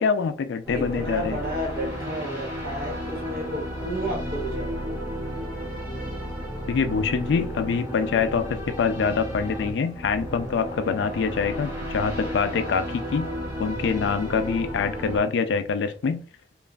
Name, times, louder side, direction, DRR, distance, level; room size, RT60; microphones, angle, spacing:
voice 1, 0.0-1.4 6.7-13.3 13.6-16.2, left 5 dB, 85° left, 10 dB, 0.3 m, -25 dB
sound 1, 0.6-15.2, equal, 10° right, 0.9 m, -33 dB
voice 2, 0.7-5.0, equal, 55° right, 1 dB, 0.9 m, -32 dB
3.0 x 2.4 x 2.3 m, 0.41 s
head